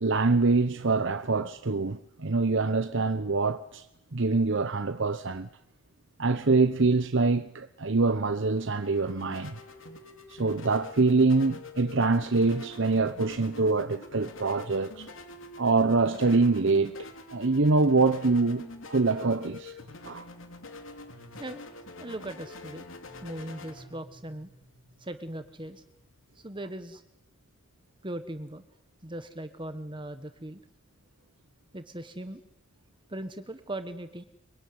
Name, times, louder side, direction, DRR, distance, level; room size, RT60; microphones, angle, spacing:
voice 1, 0.0-3.8 4.1-5.5 6.2-9.5 10.3-15.1 15.6-19.8 20.0-20.3, right 3 dB, 60° right, 1.0 m, -25 dB
sound 1, 8.2-26.5, left 3 dB, 65° left, 3.3 m, -46 dB
voice 2, 22.0-22.9 23.2-24.5 25.0-25.8 26.4-27.0 28.0-28.6 29.0-30.6 31.7-32.4 33.1-34.2, right 1 dB, 25° right, 1.4 m, -39 dB
24.5 x 24.0 x 9.6 m
head